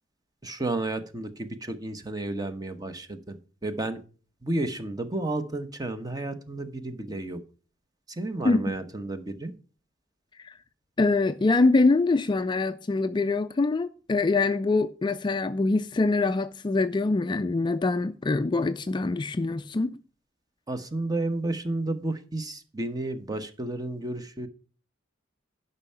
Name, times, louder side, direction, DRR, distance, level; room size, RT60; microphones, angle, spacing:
voice 1, 0.4-4.0 4.4-7.4 8.1-9.5 20.7-24.5, right 2 dB, 20° right, 0.9 m, -32 dB
voice 2, 8.4-8.8 10.4-10.6 11.0-20.0, left 3 dB, 25° left, 0.3 m, -24 dB
10.5 x 5.5 x 5.5 m
head